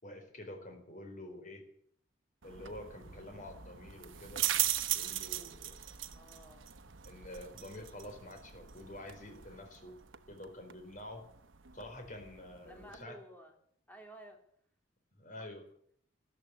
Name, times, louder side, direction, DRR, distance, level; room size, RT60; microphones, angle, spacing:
voice 1, 0.0-1.6 2.4-4.4 4.9-6.0 7.1-10.0 10.3-11.3 11.7-13.2 15.2-15.6, left 1 dB, 40° left, 5 dB, 4.4 m, -48 dB
sound 1, 2.4-13.0, right 12 dB, 90° right, 1.0 m, -40 dB
voice 2, 6.1-6.7 12.6-13.5 13.9-14.4 15.4-15.5, right 1 dB, 10° left, 2 dB, 3.3 m, -53 dB
13.5 x 12.5 x 8.4 m, 0.64 s
head